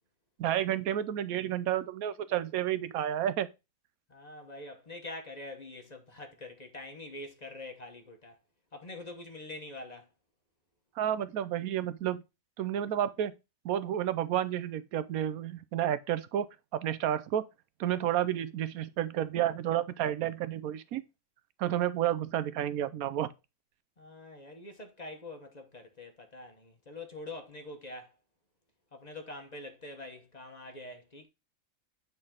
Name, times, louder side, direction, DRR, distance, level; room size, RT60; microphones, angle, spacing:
voice 1, 0.4-3.5 11.0-12.2 12.6-13.3 13.6-17.4 17.8-21.0 21.6-23.3, right 11 dB, 85° right, 1.1 m, -31 dB
voice 2, 4.1-8.3 8.7-10.1 24.0-28.1 28.9-31.3, left 2 dB, 30° left, 1.0 m, -45 dB
9.0 x 4.0 x 3.6 m
omnidirectional pair, 1.5 m